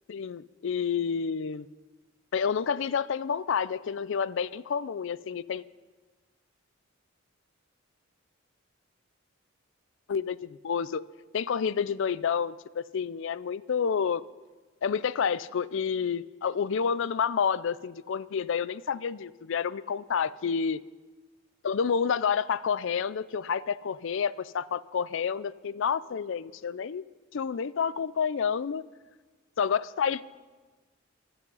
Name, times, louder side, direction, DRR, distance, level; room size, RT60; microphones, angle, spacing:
voice 1, 0.1-1.7 2.3-5.6 10.1-11.0 11.3-14.2 14.8-20.8 21.6-27.0 27.3-28.8 29.6-30.2, left 6 dB, 65° left, 18 dB, 0.4 m, -29 dB
17.0 x 12.5 x 5.5 m, 1.3 s
head